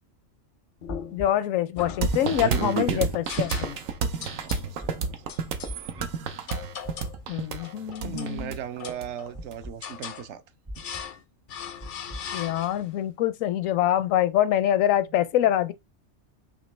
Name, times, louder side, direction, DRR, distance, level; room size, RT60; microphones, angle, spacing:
sound 1, 0.8-1.3 1.8-2.6 3.3-3.9 4.2-4.7 5.3-5.8 6.5-7.2 7.6-8.4 8.8-9.4 9.8-10.3 10.8-11.2 11.5-13.0, left 8 dB, 60° left, 0.5 m, -39 dB
sound 2, 0.9-1.3 2.0-2.5 3.3-3.7 4.5-4.9 5.6-6.1 6.8-7.2 8.1-8.5 9.3-9.7 10.6-11.0 11.8-12.2, equal, 35° right, 0.3 m, -37 dB
voice 1, 1.1-3.8 7.3-8.6 12.3-15.7, left 12 dB, 80° left, 0.9 m, -25 dB
sound 3, 2.0-9.6, right 6 dB, 90° right, 1.1 m, -29 dB
voice 2, 4.4-5.5 8.0-10.4 10.8-10.9, right 8 dB, 65° right, 0.9 m, -38 dB
5.2 x 3.1 x 3.1 m
omnidirectional pair, 1.4 m